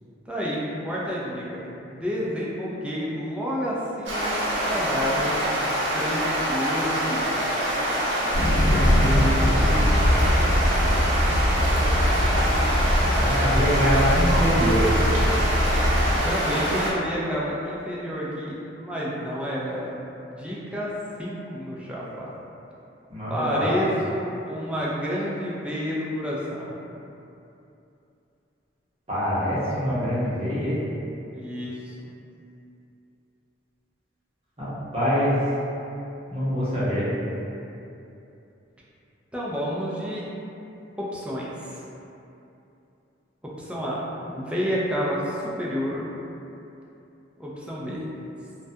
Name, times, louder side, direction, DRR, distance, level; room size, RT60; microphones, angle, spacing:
voice 1, 0.3-4.3 4.7-5.4 5.9-6.2 6.5-7.4 16.2-19.9 20.2-20.9 21.2-22.3 23.3-26.7 31.3-31.9 39.3-40.2 41.0-41.8 43.4-46.1 47.4-48.1, equal, 5° right, -6 dB, 0.3 m, -29 dB
sound 1, 4.0-16.9, equal, 80° right, 0.6 m, -25 dB
sound 2, 8.3-16.2, equal, 70° left, 0.8 m, -22 dB
voice 2, 8.7-9.8 13.1-14.9 23.1-23.7 29.1-30.8 34.6-35.3 36.3-37.1, equal, 35° right, -11 dB, 0.8 m, -25 dB
2.2 x 2.2 x 2.7 m, 2.8 s
head